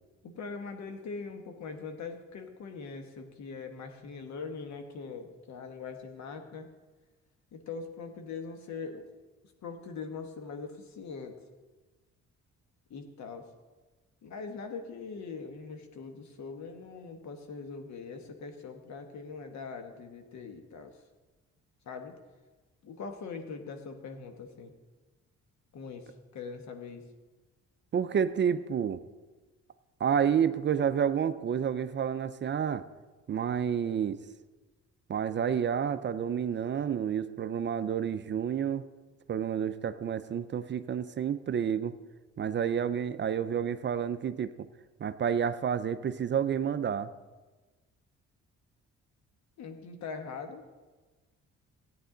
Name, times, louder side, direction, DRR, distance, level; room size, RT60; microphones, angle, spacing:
voice 1, 0.2-6.7 7.5-9.1 9.6-11.4 12.9-13.5 14.2-20.9 21.9-22.2 22.8-24.7 25.7-27.0 49.6-50.6, left 5 dB, 65° left, 6 dB, 1.3 m, -42 dB
voice 2, 27.9-29.0 30.0-32.8 33.3-34.2 35.1-38.9 39.3-41.9 42.4-44.7 45.0-47.1, right 8 dB, 40° right, 12 dB, 0.5 m, -29 dB
14.0 x 9.3 x 3.8 m, 1.3 s
cardioid pair, 90°, 30 cm